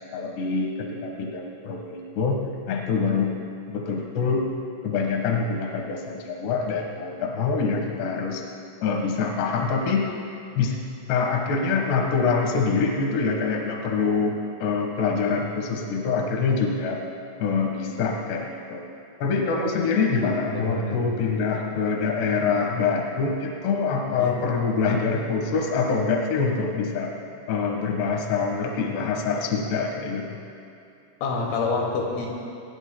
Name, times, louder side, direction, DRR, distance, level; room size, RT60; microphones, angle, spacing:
voice 1, 0.1-2.4 2.7-3.3 3.7-4.4 4.8-8.4 8.8-10.2 10.6-10.8 11.1-17.0 17.4-18.9 19.2-27.1 27.5-30.4, left 5 dB, 65° left, 1 dB, 3.3 m, -25 dB
voice 2, 20.5-21.1 24.2-24.4 31.2-32.3, left 3 dB, 85° left, -1 dB, 4.9 m, -27 dB
23.5 x 21.0 x 2.3 m, 2.7 s
omnidirectional pair, 5.8 m